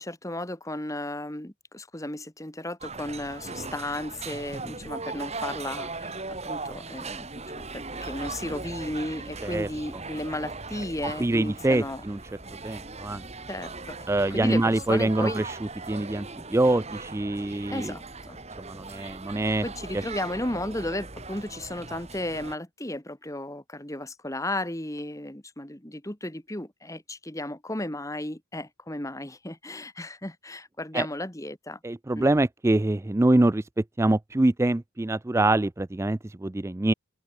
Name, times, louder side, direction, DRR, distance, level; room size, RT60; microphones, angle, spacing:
voice 1, 0.0-7.3 7.6-12.0 13.5-14.0 14.3-15.4 17.7-18.4 19.6-31.8 32.2-32.3, left 1 dB, 15° left, 1.6 m, -34 dB
sound 1, 2.8-22.6, right 3 dB, 30° right, 3.1 m, -39 dB
voice 2, 11.2-12.2 12.6-13.2 14.1-15.6 15.9-17.9 18.6-19.6 19.9-20.0 30.9-31.1 31.8-33.7 34.0-36.9, right 2 dB, 10° right, 0.3 m, -24 dB
open air
head